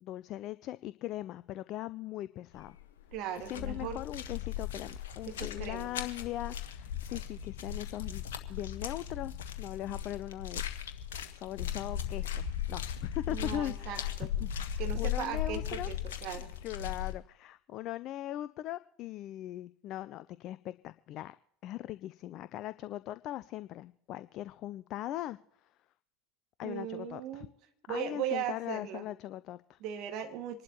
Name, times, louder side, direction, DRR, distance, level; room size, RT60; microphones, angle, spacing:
voice 1, 0.0-2.8 3.4-8.2 8.5-10.6 11.3-14.1 14.4-15.9 16.6-21.3 21.6-25.7 26.6-27.5 27.9-29.8, left 13 dB, 45° left, 15 dB, 0.4 m, -40 dB
sound 1, 2.6-2.8 3.1-17.1, left 10 dB, 70° left, 1.2 m, -37 dB
voice 2, 3.1-4.0 5.3-5.9 13.3-14.3 14.8-16.0 16.2-16.5 26.6-27.5 27.9-29.0 29.8-30.6, right 9 dB, 50° right, 6 dB, 1.9 m, -38 dB
26.5 x 11.5 x 3.0 m, 0.71 s
figure-of-eight pair, 75°, 0 cm